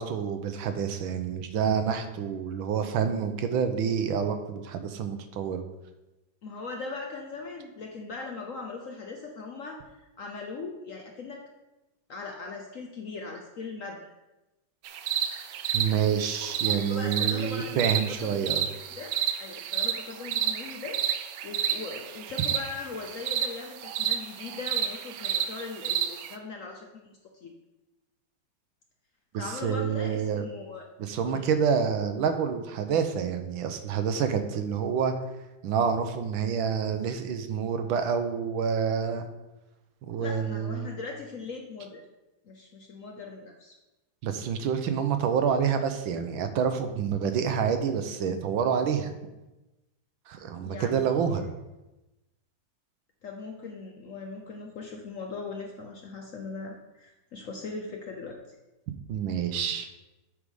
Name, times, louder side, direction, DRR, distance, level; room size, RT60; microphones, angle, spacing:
voice 1, 0.0-5.6 15.7-18.6 29.3-30.4 31.0-35.1 35.6-39.3 40.0-40.9 44.2-49.1 50.3-51.4 59.1-59.9, right 7 dB, 90° right, 8 dB, 1.5 m, -28 dB
voice 2, 6.4-11.4 12.1-14.1 16.9-19.1 19.4-21.0 21.4-27.5 29.4-30.9 31.2-31.5 40.2-42.0 42.4-43.8 50.6-51.5 53.2-58.6, left 4 dB, 60° left, 2 dB, 0.8 m, -40 dB
sound 1, 14.8-26.4, right 9 dB, 70° right, 1.2 m, -31 dB
8.4 x 4.8 x 5.3 m, 1.0 s
omnidirectional pair, 2.1 m